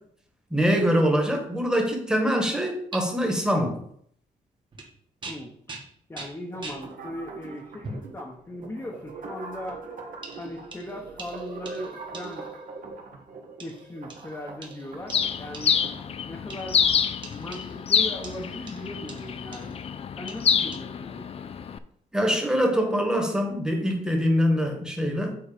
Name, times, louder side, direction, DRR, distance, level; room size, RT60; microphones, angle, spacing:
voice 1, 0.5-3.8 22.1-25.3, equal, 5° right, 2 dB, 1.5 m, -24 dB
sound 1, 2.9-3.0 4.7-4.9 5.2-6.9 7.8-8.1 8.9-9.1 10.2-12.6 13.6-16.0 16.5-17.9 18.2-19.9 20.3-20.8, right 3 dB, 30° right, 1.5 m, -43 dB
voice 2, 6.1-9.8 10.4-12.5 13.6-15.8 16.3-19.8 20.2-21.5, left 1 dB, 15° left, -1 dB, 1.0 m, -38 dB
sound 2, 6.5-16.1, right 3 dB, 60° right, 1.4 m, -42 dB
Bird, 15.1-21.8, left 7 dB, 40° left, 0.5 m, -27 dB
7.5 x 4.0 x 5.0 m, 0.65 s
cardioid pair, 130°, 15 cm